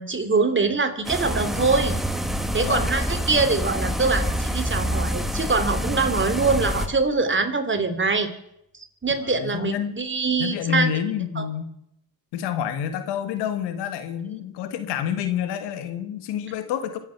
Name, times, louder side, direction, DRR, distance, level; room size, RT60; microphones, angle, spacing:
voice 1, 0.0-1.9 2.5-8.3 8.7-10.9 11.4-11.5, right 4 dB, 30° right, 8 dB, 2.9 m, -23 dB
sound 1, 1.0-6.9, equal, ahead, 2.0 m, -26 dB
voice 2, 2.6-2.9 9.2-9.9 10.4-11.7 12.3-17.0, left 9 dB, 90° left, 10 dB, 1.6 m, -28 dB
25.5 x 8.8 x 5.8 m, 0.77 s
supercardioid pair, 65°, 39 cm